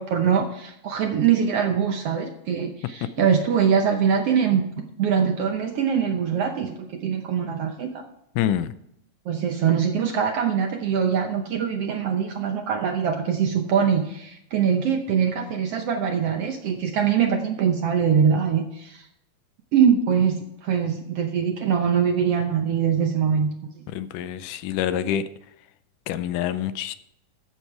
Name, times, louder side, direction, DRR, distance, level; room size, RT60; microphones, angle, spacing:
voice 1, 0.0-8.0 9.3-19.1 19.7-23.5, right 7 dB, 70° right, 4 dB, 1.5 m, -23 dB
voice 2, 8.4-8.7 23.9-25.2 26.1-26.9, left 10 dB, 85° left, 13 dB, 2.2 m, -26 dB
13.5 x 7.3 x 4.8 m, 0.79 s
omnidirectional pair, 3.6 m